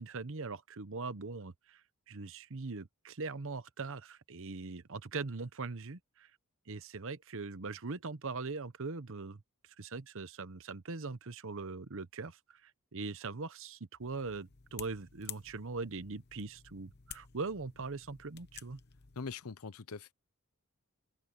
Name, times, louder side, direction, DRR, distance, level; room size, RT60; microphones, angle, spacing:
voice 1, 0.0-1.8 2.1-6.3 6.7-9.4 9.8-18.8, right 4 dB, 60° right, 0.9 m, -41 dB
sound 1, 14.0-19.3, left 10 dB, 50° left, 1.0 m, -52 dB
voice 2, 19.2-20.1, left 4 dB, 75° left, 0.8 m, -42 dB
open air
head